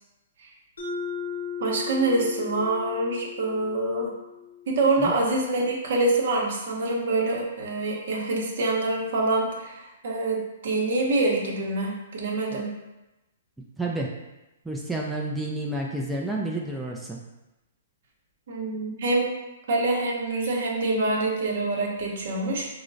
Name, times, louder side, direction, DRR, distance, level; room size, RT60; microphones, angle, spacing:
Mallet percussion, 0.8-5.3, left 6 dB, 85° left, 0.7 m, -37 dB
voice 1, 1.6-4.1 4.7-10.4 10.6-12.7 18.5-19.3 19.7-22.7, right 2 dB, 65° right, -1 dB, 0.7 m, -25 dB
voice 2, 13.8-14.1 14.7-17.2, right 2 dB, 5° right, -3 dB, 0.3 m, -30 dB
3.7 x 2.0 x 2.5 m, 1.0 s
hypercardioid pair, 130°, 0 cm